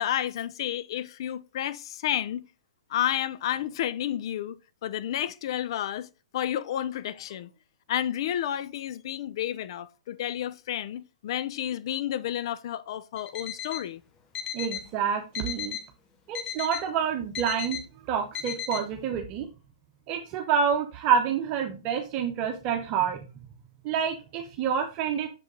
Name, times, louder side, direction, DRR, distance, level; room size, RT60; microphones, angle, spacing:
voice 1, 0.0-2.4 2.9-6.1 6.3-7.5 7.9-14.0, left 11 dB, 55° left, 0.6 m, -31 dB
Alarm, 13.2-13.9 14.3-14.9 15.3-15.9 16.3-16.9 17.3-17.8 18.3-18.8, left 9 dB, 30° left, 1.1 m, -35 dB
voice 2, 14.5-15.8 16.3-17.8 18.1-19.5 20.1-23.2 23.8-25.3, right 7 dB, 35° right, 1.1 m, -27 dB
7.1 x 5.1 x 3.9 m
hypercardioid pair, 120°, 3 cm